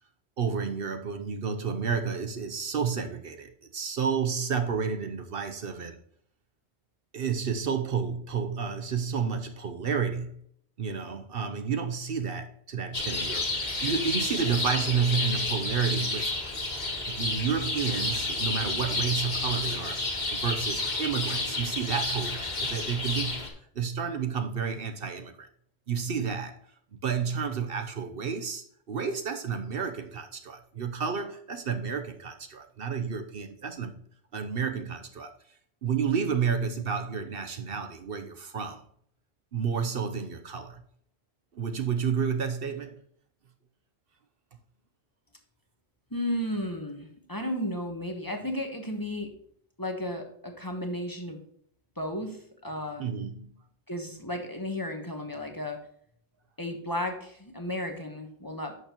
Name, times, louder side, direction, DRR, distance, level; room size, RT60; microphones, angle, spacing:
voice 1, 0.4-6.0 7.1-10.4 10.8-16.3 17.1-23.5 23.7-25.5 25.9-26.6 26.9-33.9 34.3-35.3 35.8-38.8 39.5-40.8 41.5-43.0 53.0-53.5, right 6 dB, 60° right, 0.9 m, -31 dB
sound 1, 12.9-23.5, left 2 dB, 45° left, 1.6 m, -30 dB
voice 2, 46.1-49.3 49.8-51.4 52.0-53.0 53.9-55.8 56.6-58.7, left 1 dB, 20° left, 1.2 m, -34 dB
11.0 x 6.6 x 3.0 m
omnidirectional pair, 1.1 m